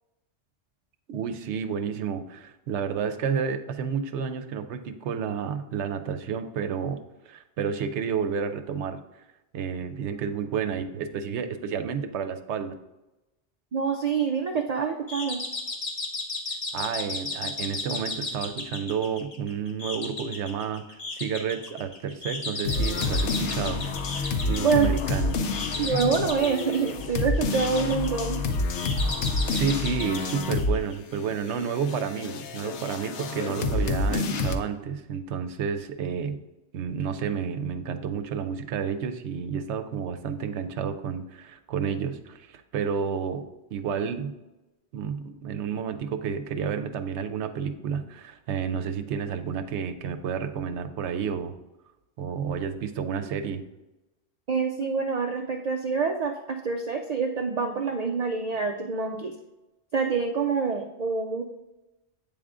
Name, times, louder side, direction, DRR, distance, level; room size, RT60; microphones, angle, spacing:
voice 1, 1.1-7.0 7.3-9.0 9.5-12.7 16.7-23.8 24.5-25.4 29.5-36.4 36.7-43.4 43.7-44.3 44.9-51.5 52.2-53.6, right 7 dB, 90° right, 9 dB, 0.9 m, -30 dB
voice 2, 13.7-15.4 24.6-24.9 25.8-28.4 33.9-34.3 54.5-59.3 59.9-61.4, right 5 dB, 55° right, 4 dB, 0.4 m, -26 dB
sound 1, 15.1-31.2, left 3 dB, 40° left, 0.8 m, -35 dB
sound 2, 22.6-30.8 31.1-34.6, left 3 dB, 85° left, 0.9 m, -28 dB
8.5 x 3.6 x 3.6 m, 0.99 s
omnidirectional pair, 1.1 m